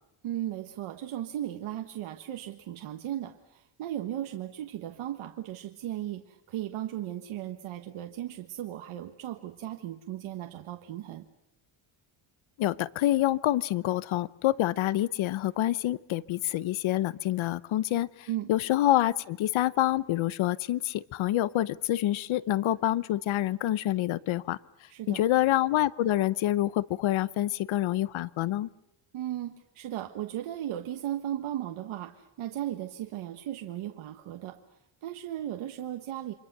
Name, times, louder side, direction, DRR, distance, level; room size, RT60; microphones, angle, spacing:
voice 1, 0.2-11.3 18.3-18.5 24.9-25.2 29.1-34.6 35.0-36.3, right 12 dB, 85° right, 5 dB, 1.4 m, -36 dB
voice 2, 12.6-24.6 25.1-28.7, left 14 dB, 75° left, 19 dB, 0.9 m, -27 dB
29.5 x 24.5 x 6.6 m, 0.88 s
cardioid pair, 150°, 48 cm